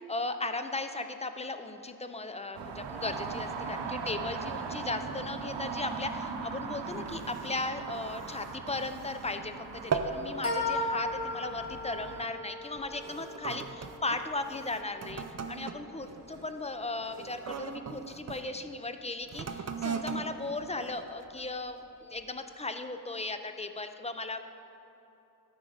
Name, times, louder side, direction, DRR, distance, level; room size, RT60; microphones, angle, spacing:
voice 1, 0.0-24.5, left 2 dB, 15° left, 8 dB, 0.4 m, -37 dB
sound 1, 2.5-12.3, right 5 dB, 90° right, 0.7 m, -39 dB
sound 2, 6.9-9.5 9.7-10.3 10.7-11.0 11.7-11.9 12.6-18.4 19.2-21.6 22.2-22.3, right 5 dB, 40° right, 0.6 m, -39 dB
sound 3, 10.4-16.1, left 2 dB, 35° left, 2.0 m, -38 dB
12.5 x 4.8 x 5.0 m, 3.0 s
wide cardioid pair, 75°, 41 cm